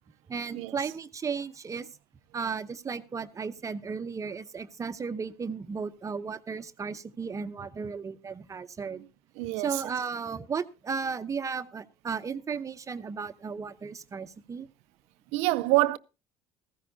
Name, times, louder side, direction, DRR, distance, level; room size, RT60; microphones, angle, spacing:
voice 1, 0.3-1.9 2.3-9.0 9.6-14.7, right 5 dB, 30° right, 0.8 m, -35 dB
voice 2, 9.4-9.9 15.3-16.0, right 20 dB, 75° right, 0.6 m, -26 dB
15.0 x 14.5 x 2.7 m
supercardioid pair, 85°, 11 cm